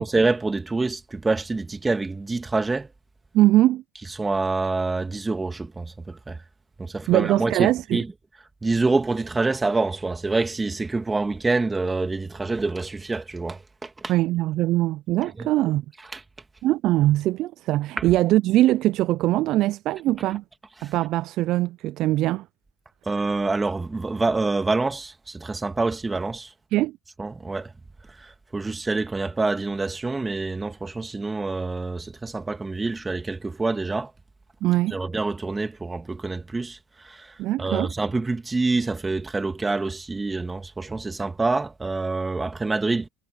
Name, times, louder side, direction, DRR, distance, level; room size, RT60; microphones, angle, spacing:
voice 1, 0.0-2.9 4.2-6.4 6.8-8.1 8.6-14.1 15.4-15.5 16.1-16.2 18.0-18.1 20.8-20.9 23.1-26.5 27.2-27.7 28.1-34.1 34.9-43.1, right 3 dB, 15° right, 2.0 m, -26 dB
voice 2, 3.3-3.8 7.1-8.0 14.1-15.9 16.6-20.4 20.8-22.5 26.7-27.0 34.6-35.0 37.4-37.9, right 16 dB, 60° right, 0.4 m, -22 dB
supercardioid pair, 100°, 0 cm